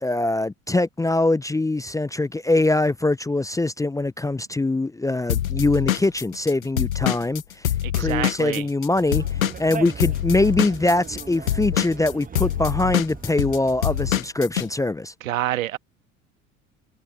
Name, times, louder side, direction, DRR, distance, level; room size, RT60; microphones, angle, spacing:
voice 1, 0.0-7.4 7.9-9.2 9.6-15.1, left 2 dB, 10° left, 0.6 m, -23 dB
Drum kit / Drum, 5.3-8.9 9.1-14.7, left 11 dB, 85° left, 1.1 m, -25 dB
voice 2, 7.8-8.7 15.2-15.8, right 14 dB, 80° right, 1.7 m, -27 dB
Conversation, 8.9-14.2, right 6 dB, 20° right, 1.2 m, -39 dB
hypercardioid pair, 70°, 40 cm